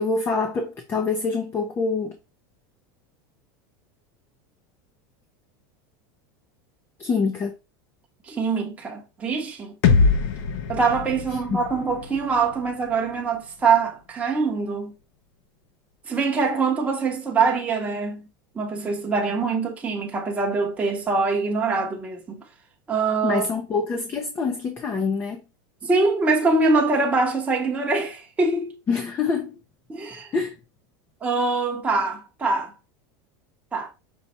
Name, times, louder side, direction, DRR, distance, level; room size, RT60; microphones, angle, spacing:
voice 1, 0.0-2.2 7.0-7.5 11.3-11.6 23.2-25.4 28.9-29.6 30.3-30.5, left 4 dB, 20° left, 0.5 m, -25 dB
voice 2, 8.3-9.7 10.7-14.9 16.1-18.2 18.5-22.4 22.9-23.5 25.8-28.7 29.9-30.3 31.2-32.7 33.7-33.9, right 4 dB, 10° right, 0.8 m, -23 dB
sound 1, 9.8-13.8, left 5 dB, 60° left, 0.7 m, -24 dB
5.4 x 2.3 x 4.1 m
supercardioid pair, 150°, 11 cm